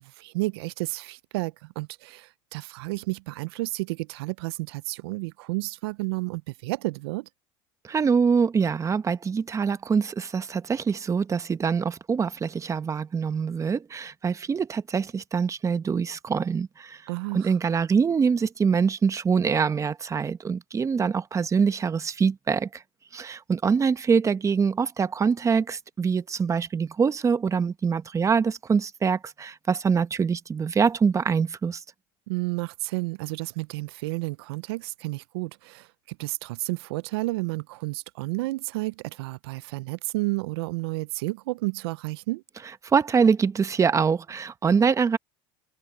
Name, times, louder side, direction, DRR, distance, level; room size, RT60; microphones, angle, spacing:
voice 1, 0.0-7.3 17.1-17.5 32.3-42.4, right 23 dB, 85° right, 0.4 m, -31 dB
voice 2, 7.9-17.0 17.3-22.7 23.1-31.8 42.9-45.2, right 6 dB, 25° right, 1.0 m, -24 dB
supercardioid pair, 105°, 13 cm